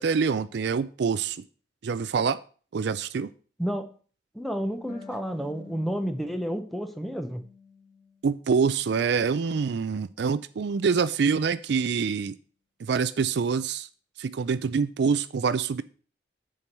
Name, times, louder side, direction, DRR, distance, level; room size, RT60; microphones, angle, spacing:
voice 1, 0.0-1.4 1.8-2.4 2.7-3.3 8.2-12.4 12.8-13.9 14.2-15.8, right 5 dB, 60° right, 15 dB, 0.4 m, -26 dB
voice 2, 4.3-7.4, equal, ahead, 7 dB, 0.7 m, -30 dB
Harp, 4.9-8.3 8.6-9.7, left 5 dB, 55° left, 2.8 m, -50 dB
7.0 x 4.6 x 6.6 m, 0.40 s
head